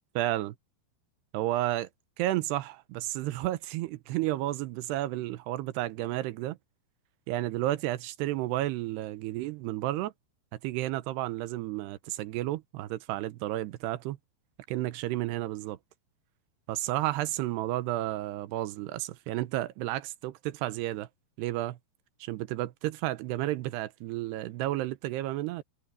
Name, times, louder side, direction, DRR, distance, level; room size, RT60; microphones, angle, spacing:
voice 1, 0.2-0.6 1.3-1.9 2.2-6.6 7.3-10.1 10.6-14.2 14.7-15.8 16.7-21.1 21.4-21.8 22.2-25.6, right 15 dB, 90° right, 2.9 m, -32 dB
omnidirectional pair, 4.7 m